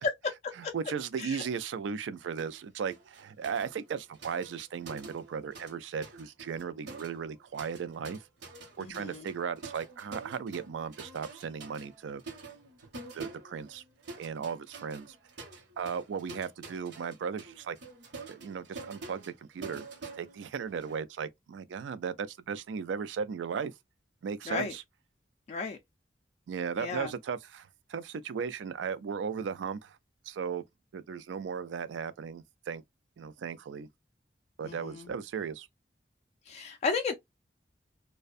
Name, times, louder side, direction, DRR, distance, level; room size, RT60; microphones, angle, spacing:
voice 1, 0.7-8.2 8.8-12.2 13.1-13.8 14.2-15.2 15.8-17.8 18.3-23.7 24.2-24.8 26.5-30.0 30.3-30.6 30.9-32.8 33.2-33.9 34.6-35.7, right 6 dB, 90° right, 0.3 m, -36 dB
sound 1, 2.4-2.6 2.9-5.8 6.0-21.0, right 3 dB, 70° right, 0.8 m, -47 dB
voice 2, 8.8-9.2 24.5-24.7 25.5-25.8 26.8-27.1 34.6-35.1 36.5-37.1, left 4 dB, 40° left, 0.3 m, -34 dB
2.5 x 2.1 x 2.4 m
head